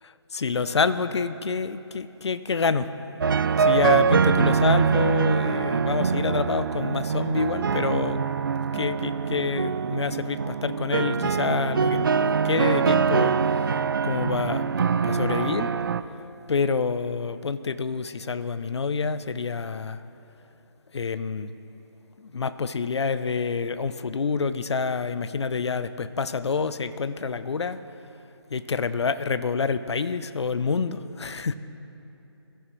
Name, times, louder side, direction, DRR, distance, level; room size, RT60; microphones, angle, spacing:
voice 1, 0.3-2.9 3.6-8.2 8.7-13.8 14.0-15.7 16.5-20.0 20.9-21.5 22.2-27.8 28.5-31.5, left 5 dB, 70° left, 13 dB, 0.6 m, -27 dB
sound 1, 3.2-16.0, right 6 dB, 50° right, 0.4 m, -24 dB
21.5 x 15.0 x 3.2 m, 2.9 s
figure-of-eight pair, 160°, 15 cm